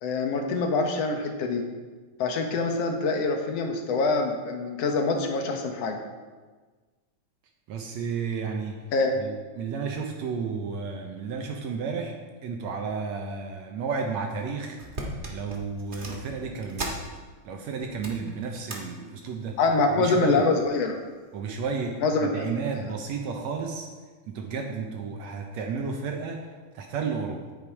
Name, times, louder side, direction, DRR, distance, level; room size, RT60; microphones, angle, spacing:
voice 1, 0.0-1.6 2.2-6.0 8.9-9.1 19.6-21.0 22.0-22.4, left 3 dB, 65° left, 3 dB, 1.9 m, -25 dB
voice 2, 7.7-8.8 9.2-12.1 12.4-14.8 15.3-17.0 17.5-19.6 20.0-20.4 21.3-23.9 24.3-26.5 26.8-27.4, right 5 dB, 70° right, 3 dB, 1.9 m, -32 dB
sound 1, 14.3-14.4 14.7-17.5 17.8-18.8 19.2-19.5 20.3-20.8 21.3-21.4, right 1 dB, 50° right, 0.6 m, -38 dB
10.0 x 8.8 x 4.8 m, 1.4 s
omnidirectional pair, 3.6 m